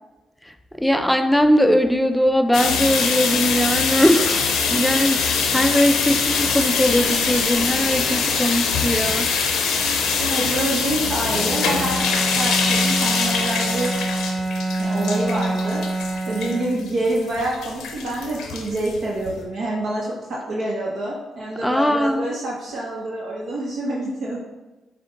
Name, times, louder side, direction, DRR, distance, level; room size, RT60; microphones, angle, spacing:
voice 1, 0.4-9.3 16.5-16.7 21.6-22.3, equal, 5° left, 7 dB, 0.4 m, -20 dB
sound 1, 2.5-19.4, left 5 dB, 80° left, 0.5 m, -23 dB
voice 2, 10.2-12.1 12.3-13.9 14.8-15.9 16.3-24.4, right 1 dB, 65° right, -4 dB, 0.9 m, -26 dB
Bowed string instrument, 11.3-17.1, right 2 dB, 45° right, 1.2 m, -26 dB
5.0 x 2.2 x 3.8 m, 1.1 s
supercardioid pair, 55°, 0 cm